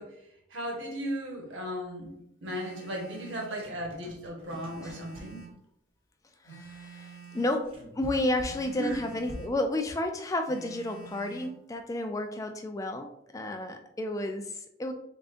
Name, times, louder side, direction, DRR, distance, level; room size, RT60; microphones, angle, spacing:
voice 1, 0.0-2.1 2.4-5.4 8.8-9.0, equal, 70° right, 0 dB, 1.1 m, -36 dB
Telephone, 2.4-3.6 4.4-5.6 6.4-7.6 8.4-9.6 10.5-11.6, right 6 dB, 85° left, 1.3 m, -48 dB
sound 1, 3.1-5.6 7.2-9.7, equal, 30° right, 0.7 m, -46 dB
voice 2, 6.4-14.9, left 1 dB, 15° left, 6 dB, 0.3 m, -32 dB
3.7 x 3.6 x 2.5 m, 0.78 s
head